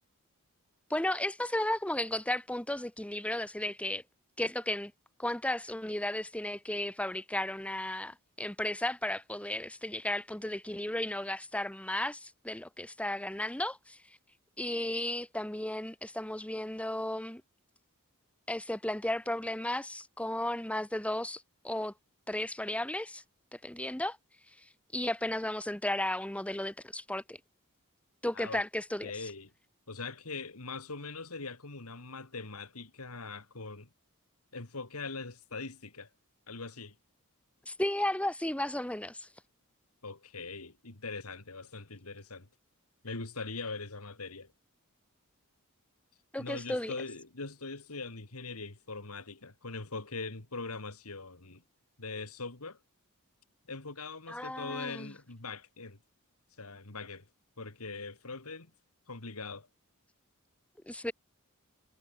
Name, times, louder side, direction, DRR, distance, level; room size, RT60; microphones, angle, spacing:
voice 1, 0.9-4.0 4.4-4.9 5.2-14.0 14.6-17.4 18.5-21.9 22.3-23.2 23.5-24.2 24.9-27.4 28.2-29.1 37.7-39.3 46.3-46.9 54.3-55.1 60.9-61.1, left 1 dB, 5° left, 1.1 m, -34 dB
voice 2, 29.0-29.5 29.9-33.9 34.5-36.1 36.5-37.0 40.0-42.5 43.0-44.5 46.4-51.6 52.0-52.8 53.7-56.0 56.6-57.3 57.6-58.7 59.1-59.7, left 3 dB, 75° left, 2.5 m, -41 dB
head